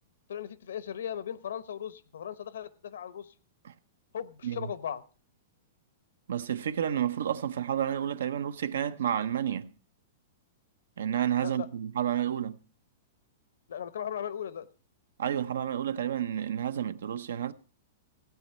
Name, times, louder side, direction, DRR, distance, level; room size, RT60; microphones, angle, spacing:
voice 1, 0.3-3.3 4.1-5.0 11.4-11.7 13.7-14.7, left 9 dB, 90° left, 0.8 m, -37 dB
voice 2, 6.3-9.7 11.0-12.6 15.2-17.5, right 9 dB, 90° right, 0.7 m, -30 dB
16.0 x 8.4 x 4.3 m
hypercardioid pair, 155°, 0 cm